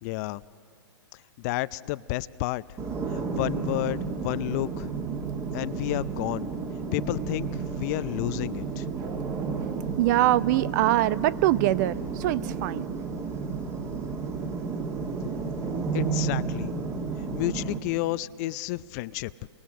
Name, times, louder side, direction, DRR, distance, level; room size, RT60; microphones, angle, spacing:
voice 1, 0.0-0.4 1.1-2.6 3.1-4.9 5.5-6.5 6.9-8.9 15.9-16.7 17.3-19.3, left 18 dB, 40° left, 18 dB, 0.5 m, -31 dB
sound 1, 2.8-17.8, right 5 dB, 25° right, 2.2 m, -32 dB
voice 2, 10.0-12.9, right 15 dB, 45° right, 18 dB, 0.6 m, -23 dB
29.5 x 23.0 x 6.4 m, 2.2 s
figure-of-eight pair, 115°, 14 cm